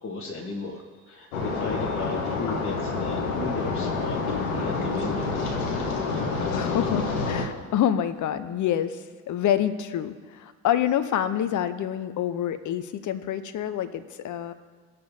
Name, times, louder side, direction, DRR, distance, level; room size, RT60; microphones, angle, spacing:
voice 1, 0.0-5.8 6.1-6.6, left 3 dB, 30° left, -2 dB, 1.3 m, -36 dB
sound 1, 1.3-7.5, left 4 dB, 80° left, 1.2 m, -28 dB
voice 2, 6.5-14.5, left 10 dB, 45° left, 12 dB, 0.8 m, -27 dB
19.0 x 6.7 x 2.8 m, 1.5 s
figure-of-eight pair, 55°, 42 cm